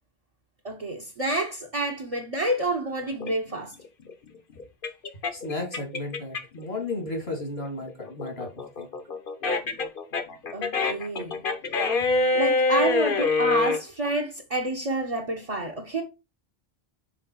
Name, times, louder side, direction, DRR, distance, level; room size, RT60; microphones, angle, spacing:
voice 1, 0.6-3.7 10.5-11.4 12.3-16.0, right 2 dB, 35° right, 1.0 m, -28 dB
sound 1, 3.2-6.6 7.0-13.8, left 3 dB, 60° left, 1.1 m, -26 dB
voice 2, 5.3-8.5 8.8-8.9 12.0-12.1 15.6-15.7, left 2 dB, 85° left, 2.8 m, -34 dB
6.1 x 4.4 x 4.5 m
omnidirectional pair, 1.0 m